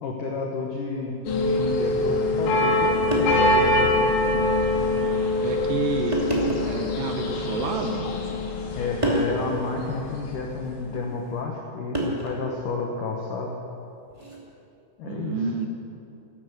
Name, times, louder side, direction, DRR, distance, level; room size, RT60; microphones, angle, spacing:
voice 1, 0.0-4.1 8.7-13.5 15.0-15.5, left 3 dB, 85° left, 0 dB, 1.8 m, -30 dB
sound 1, 1.3-10.5 10.8-10.9, left 1 dB, 70° left, 4.0 m, -24 dB
sound 2, 1.4-1.6 2.7-2.8 3.1-3.6 4.2-4.3 5.2-5.4 6.1-6.8 7.7-8.3 9.0-9.4 10.9-11.1 11.9-12.5 14.1-14.4, right 1 dB, 35° right, 0.4 m, -28 dB
voice 2, 5.4-6.2 6.5-8.1 15.0-15.7, right 5 dB, 75° right, 4 dB, 2.8 m, -29 dB
14.0 x 12.0 x 7.9 m, 2.7 s
omnidirectional pair, 5.7 m